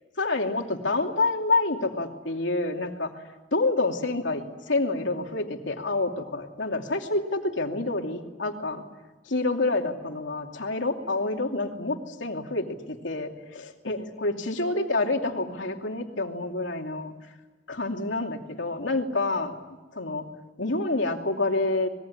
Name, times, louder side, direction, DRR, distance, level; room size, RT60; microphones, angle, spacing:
voice 1, 0.2-3.1 3.5-8.8 9.3-17.1 17.7-19.6 19.9-20.2 20.6-21.9, left 2 dB, 75° left, 3 dB, 2.8 m, -28 dB
25.5 x 21.0 x 10.0 m, 1.2 s
head